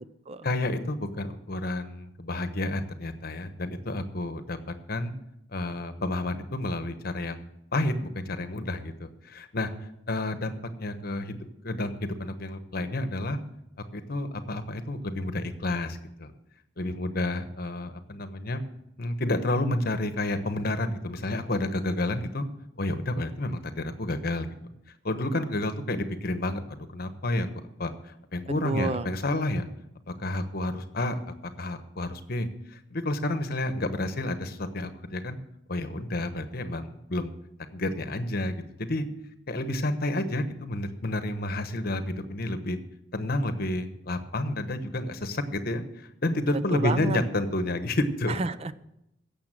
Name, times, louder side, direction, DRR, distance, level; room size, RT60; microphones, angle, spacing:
voice 1, 0.4-4.6 4.9-5.1 5.5-7.4 7.7-9.7 10.1-13.4 13.9-16.3 16.8-18.6 19.0-22.5 22.8-24.5 25.0-27.5 27.8-29.7 30.1-31.2 31.6-35.4 35.7-37.3 37.7-39.1 39.5-42.8 43.1-48.3, left 1 dB, 55° left, 10 dB, 1.2 m, -30 dB
voice 2, 28.6-29.1 46.7-47.2 48.3-48.7, right 3 dB, 35° right, 14 dB, 0.5 m, -29 dB
16.0 x 7.1 x 7.6 m, 0.84 s
head